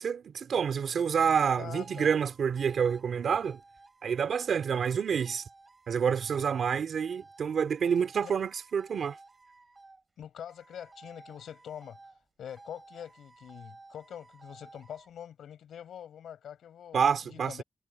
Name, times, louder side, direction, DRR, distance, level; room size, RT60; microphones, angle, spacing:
voice 1, 0.0-3.6 4.0-5.4 5.9-9.2 16.9-17.6, right 7 dB, 50° right, 2.7 m, -28 dB
voice 2, 1.6-2.1 8.2-8.3 10.2-12.0 12.4-17.6, left 9 dB, 65° left, 6.3 m, -44 dB
sound 1, 1.7-10.0 10.5-12.2 12.5-15.1, right 3 dB, 20° right, 6.0 m, -55 dB
wide cardioid pair, 165°, 0 cm